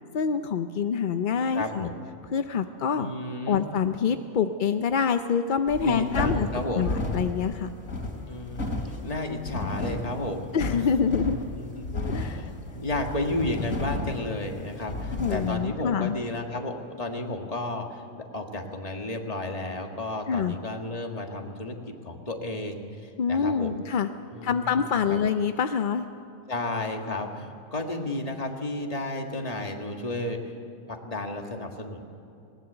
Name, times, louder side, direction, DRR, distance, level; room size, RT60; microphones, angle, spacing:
voice 1, 0.1-1.9 2.3-3.1 3.5-6.5 6.8-7.7 10.5-11.4 11.9-12.4 15.1-16.2 20.3-20.6 23.2-24.1 24.4-26.1, left 6 dB, 55° left, 9 dB, 0.6 m, -26 dB
voice 2, 1.5-2.0 3.0-3.7 5.8-6.9 8.3-10.8 11.3-23.8 24.3-24.7 25.1-25.2 26.5-30.5 30.9-32.0, left 2 dB, 30° left, 3 dB, 1.8 m, -33 dB
sound 1, 5.7-15.6, left 2 dB, 75° left, 3.1 m, -33 dB
20.0 x 19.0 x 8.0 m, 2.7 s
omnidirectional pair, 1.4 m